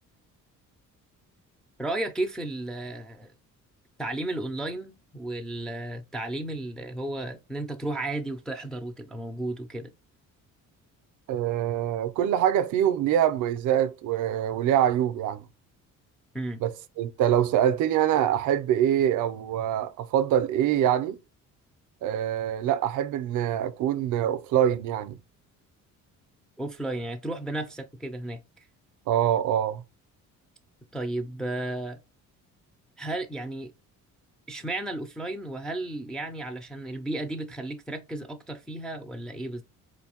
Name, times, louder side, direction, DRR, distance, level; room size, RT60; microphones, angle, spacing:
voice 1, 1.8-3.3 4.0-9.9 16.3-16.6 26.6-28.4 30.9-32.0 33.0-33.7 34.5-39.6, right 2 dB, ahead, 0.3 m, -33 dB
voice 2, 11.3-15.4 16.6-21.2 22.0-25.2 29.1-29.8, right 10 dB, 70° right, 0.5 m, -24 dB
4.0 x 2.5 x 2.8 m
cardioid pair, 155°, 31 cm